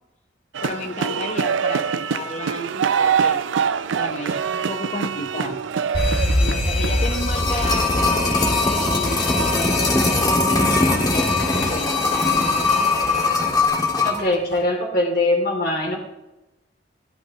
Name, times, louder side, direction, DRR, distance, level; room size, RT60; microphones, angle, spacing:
sound 1, 0.5-7.2, right 7 dB, 80° right, 0.5 m, -24 dB
voice 1, 0.6-3.4 3.9-5.7 6.4-11.9, left 2 dB, 40° left, 4 dB, 0.8 m, -33 dB
Alarm, 5.9-13.6, left 2 dB, 75° left, 5.0 m, -26 dB
sound 2, 7.0-14.2 14.5-14.6, left 3 dB, 20° left, 1.8 m, -21 dB
voice 2, 14.0-16.0, left 2 dB, 55° left, 0 dB, 2.5 m, -22 dB
29.0 x 11.5 x 2.9 m, 1.0 s
head